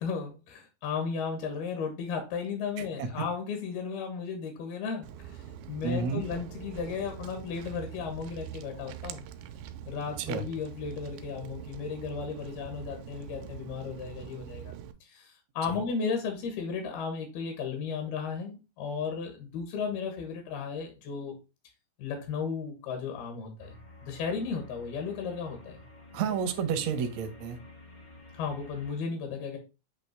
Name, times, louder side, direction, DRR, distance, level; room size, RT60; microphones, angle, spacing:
voice 1, 0.0-9.2 9.9-14.7 15.0-21.4 22.0-25.8 26.7-26.8 28.3-29.6, left 5 dB, 85° left, 4 dB, 3.3 m, -35 dB
Walk footsteps, 5.0-14.9, right 10 dB, 90° right, 2.5 m, -44 dB
voice 2, 5.8-6.2 10.3-10.4 15.7-15.8 26.1-27.6, right 6 dB, 75° right, 7 dB, 1.6 m, -30 dB
sound 1, 23.6-28.9, left 2 dB, 55° left, 0.5 m, -51 dB
8.4 x 2.9 x 4.5 m, 0.29 s
omnidirectional pair, 4.3 m